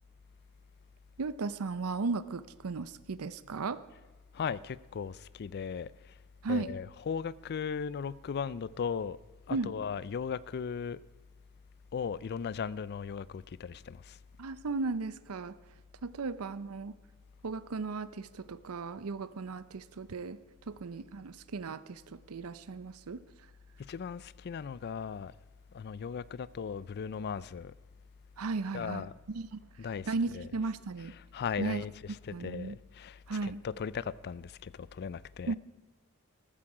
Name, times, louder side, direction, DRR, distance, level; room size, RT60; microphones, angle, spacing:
voice 1, 1.2-3.8 6.4-6.7 9.5-9.7 14.4-15.6 16.0-17.0 17.4-20.4 20.7-23.2 28.4-29.0 29.3-29.6 30.1-31.2 31.6-32.8 33.3-33.6 35.5-35.6, right 3 dB, 75° right, 0.6 m, -36 dB
voice 2, 4.3-6.2 6.5-9.2 9.5-11.0 11.9-14.2 23.8-25.3 25.7-27.7 28.7-29.2 29.8-30.7 31.0-35.5, left 6 dB, 45° left, 0.4 m, -37 dB
14.5 x 13.5 x 4.9 m
head